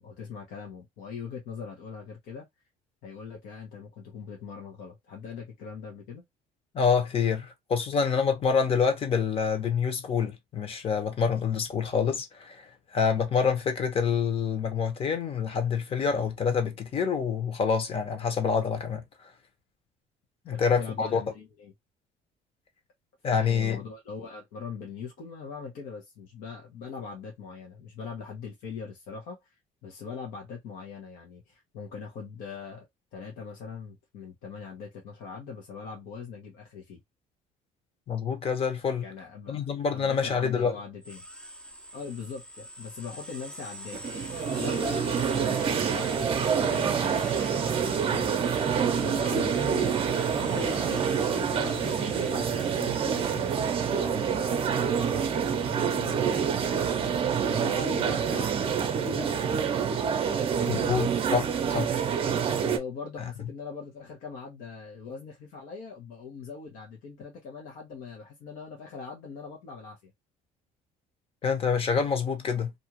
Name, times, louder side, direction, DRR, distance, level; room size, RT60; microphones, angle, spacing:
voice 1, 0.0-2.5 3.0-6.2 20.5-21.7 23.3-29.5 29.8-37.0 39.0-39.6 39.9-41.2 41.9-44.0 44.6-53.5 53.9-56.5 57.0-58.6 59.0-59.7 60.6-61.1 62.6-70.1, left 5 dB, 75° left, 1.0 m, -41 dB
voice 2, 6.7-19.0 20.5-21.2 23.2-23.8 38.1-39.0 39.5-40.7 60.7-61.9 71.4-72.7, left 6 dB, 40° left, 1.0 m, -27 dB
sound 1, 41.0-55.7, equal, 5° left, 0.6 m, -44 dB
sound 2, 43.9-62.8, right 7 dB, 40° right, 0.6 m, -27 dB
2.6 x 2.4 x 2.9 m
cardioid pair, 105°, 15 cm